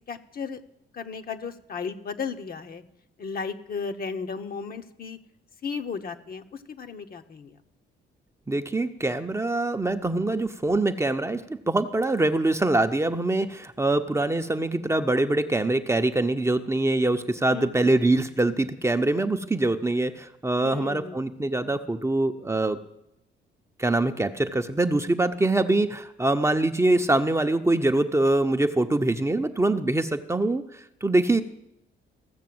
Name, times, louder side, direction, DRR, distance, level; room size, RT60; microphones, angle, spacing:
voice 1, 0.1-0.6 0.9-2.8 3.2-5.2 5.6-7.6 17.5-17.9 20.6-21.2 31.3-31.4, left 5 dB, 50° left, 7 dB, 1.1 m, -35 dB
voice 2, 8.5-22.8 23.8-31.4, right 2 dB, 15° right, 7 dB, 0.7 m, -24 dB
15.0 x 6.7 x 7.8 m, 0.80 s
cardioid pair, 90°, 20 cm